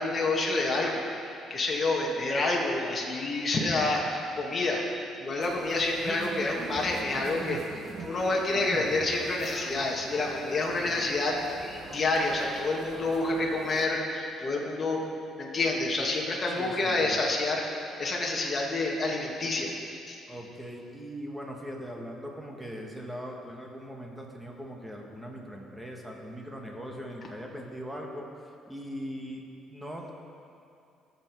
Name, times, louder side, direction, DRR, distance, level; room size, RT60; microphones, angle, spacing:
voice 1, 0.0-4.8 5.2-7.6 8.0-15.0 15.4-19.7 20.1-20.2, left 2 dB, 30° left, -2 dB, 1.9 m, -28 dB
sound 1, 5.4-13.9, right 3 dB, 40° right, 1.3 m, -42 dB
voice 2, 16.5-17.2 20.3-28.3 28.7-29.4 29.7-30.1, equal, 5° right, 0 dB, 1.8 m, -40 dB
17.5 x 7.3 x 4.8 m, 2.6 s
cardioid pair, 105°, 0 cm